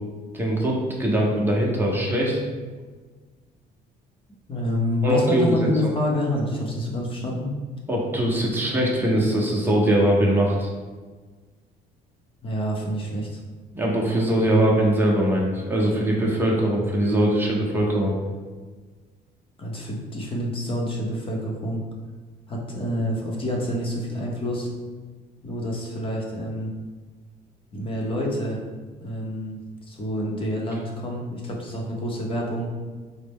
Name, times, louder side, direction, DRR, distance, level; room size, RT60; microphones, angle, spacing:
voice 1, 0.3-2.4 5.0-5.7 7.9-10.7 13.7-18.1, right 1 dB, 10° right, -3 dB, 0.9 m, -21 dB
voice 2, 4.5-7.5 12.4-13.4 19.6-21.8 22.5-24.7 25.4-26.7 27.7-28.6 29.0-32.7, left 1 dB, 30° left, -2 dB, 0.9 m, -27 dB
4.1 x 2.1 x 3.5 m, 1.4 s
cardioid pair, 110°, 17 cm